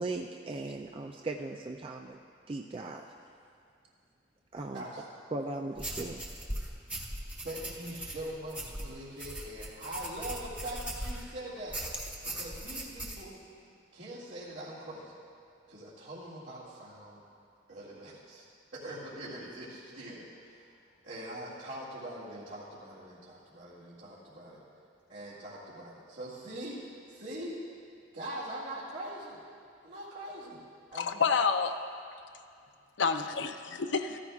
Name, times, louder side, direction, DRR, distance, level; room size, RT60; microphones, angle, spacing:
voice 1, 0.0-2.2 2.5-3.0 4.5-4.8 5.3-6.2, right 2 dB, 30° right, 2 dB, 0.3 m, -38 dB
voice 2, 4.7-5.1 7.4-11.8 12.2-13.4 13.9-15.2 15.7-17.2 17.7-18.4 18.7-20.7 21.0-24.6 25.1-27.6 28.1-29.4 29.8-30.6 30.9-31.2, right 1 dB, 80° right, -11 dB, 2.1 m, -42 dB
sound 1, 5.8-11.3 11.7-13.2, right 1 dB, 5° right, 0.9 m, -39 dB
voice 3, 30.9-31.8 33.0-34.2, left 5 dB, 75° left, 8 dB, 0.5 m, -29 dB
14.5 x 13.5 x 2.4 m, 2.4 s
head